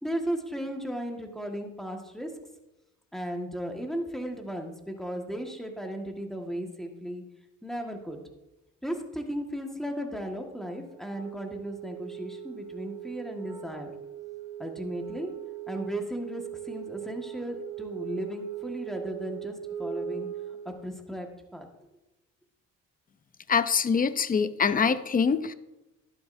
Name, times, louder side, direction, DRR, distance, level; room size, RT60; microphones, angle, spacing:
voice 1, 0.0-2.3 3.1-7.2 7.6-8.2 8.8-13.9 14.6-15.3 15.7-20.3 20.6-21.7, equal, ahead, 3 dB, 1.6 m, -35 dB
Wind instrument woodwind instrument, 11.0-20.7, right 9 dB, 15° right, 3.5 m, -39 dB
voice 2, 23.5-25.5, left 6 dB, 30° left, 13 dB, 0.6 m, -24 dB
11.5 x 11.0 x 2.7 m, 0.98 s
cardioid pair, 90°, 30 cm